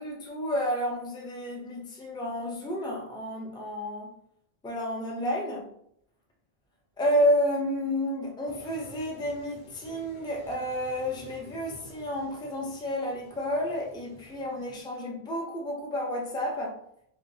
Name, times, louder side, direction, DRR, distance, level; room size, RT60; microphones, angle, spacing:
voice 1, 0.0-4.1 4.6-5.7 7.0-16.8, equal, 5° left, 0.4 m, -30 dB
Toilet flush, 8.5-14.8, equal, 75° left, 1.3 m, -52 dB
3.6 x 2.1 x 2.7 m
omnidirectional pair, 1.0 m